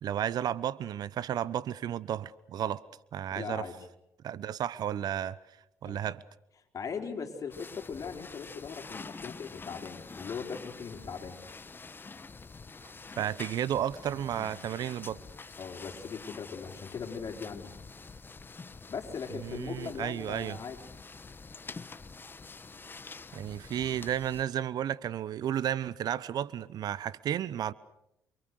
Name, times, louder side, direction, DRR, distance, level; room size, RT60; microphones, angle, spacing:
voice 1, 0.0-2.8 3.1-3.7 4.2-5.4 5.8-6.2 13.2-15.2 19.4-20.6 23.3-27.7, right 10 dB, 60° right, 0.9 m, -33 dB
voice 2, 3.3-3.7 5.8-6.0 6.7-11.4 14.3-14.6 15.6-17.7 18.9-20.8, left 6 dB, 45° left, 4.6 m, -39 dB
sound 1, 7.5-24.4, left 4 dB, 25° left, 1.3 m, -47 dB
28.5 x 24.5 x 6.5 m
hypercardioid pair, 60°, 8 cm